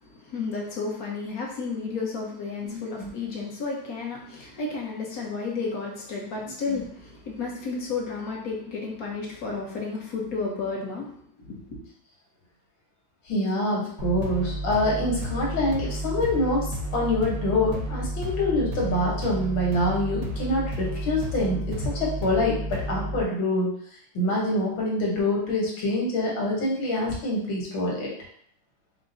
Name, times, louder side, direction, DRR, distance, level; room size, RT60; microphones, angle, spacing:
voice 1, 0.0-11.8, left 4 dB, 55° left, -2 dB, 1.3 m, -32 dB
voice 2, 2.6-3.1 6.7-6.8 13.3-23.7 24.1-28.1, left 1 dB, 85° left, -3 dB, 2.1 m, -26 dB
sound 1, 14.0-23.2, right 1 dB, 80° right, 1.4 m, -31 dB
4.9 x 2.1 x 3.9 m, 0.62 s
omnidirectional pair, 2.1 m